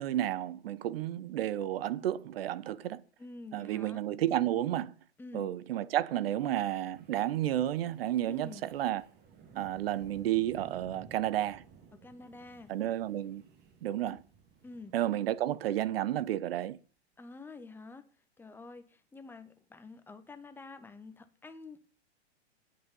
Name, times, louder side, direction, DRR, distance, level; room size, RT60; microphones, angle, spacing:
voice 1, 0.0-3.0 3.5-4.9 5.3-9.0 9.6-11.6 12.7-13.4 13.8-14.2 14.9-16.8, right 12 dB, 60° right, 0.8 m, -31 dB
voice 2, 3.2-4.0 5.2-5.5 8.3-8.7 12.0-12.7 14.6-14.9 17.2-18.1 18.4-21.8, left 3 dB, 5° left, 0.9 m, -48 dB
Wind, 6.2-16.5, right 6 dB, 30° right, 1.8 m, -57 dB
8.6 x 8.5 x 5.4 m
hypercardioid pair, 115°, 33 cm